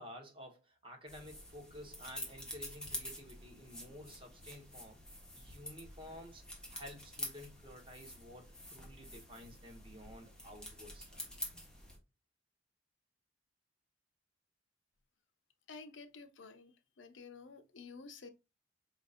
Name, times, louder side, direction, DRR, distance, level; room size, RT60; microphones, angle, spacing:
voice 1, 0.0-5.0 5.3-6.4 6.7-11.2, left 1 dB, 30° right, 1.4 m, -52 dB
sound 1, 1.1-12.0, left 1 dB, 5° left, 1.4 m, -48 dB
voice 2, 15.7-18.3, left 4 dB, 80° left, 0.7 m, -52 dB
5.0 x 4.0 x 2.5 m
head